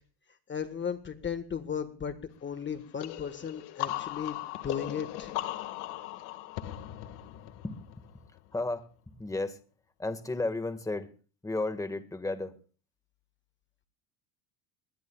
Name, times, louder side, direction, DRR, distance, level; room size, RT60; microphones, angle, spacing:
voice 1, 0.5-2.1 2.4-5.3, left 7 dB, 25° left, 1.5 m, -35 dB
sound 1, 3.0-8.6, left 15 dB, 70° left, 1.9 m, -38 dB
voice 2, 8.5-9.6 10.0-11.1 11.4-12.6, left 2 dB, 10° left, 1.7 m, -33 dB
22.5 x 20.5 x 2.4 m
supercardioid pair, 115°, 42 cm